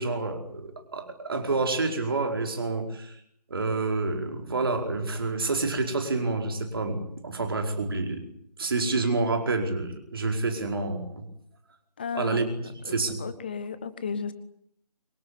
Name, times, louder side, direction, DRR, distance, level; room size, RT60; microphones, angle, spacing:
voice 1, 0.0-3.2 3.5-8.2 8.6-11.2 12.1-13.2, right 3 dB, 35° right, 5 dB, 4.9 m, -28 dB
voice 2, 12.0-12.4 12.8-14.3, left 6 dB, 15° left, 14 dB, 1.1 m, -34 dB
25.0 x 22.5 x 9.7 m, 0.68 s
figure-of-eight pair, 160°, 21 cm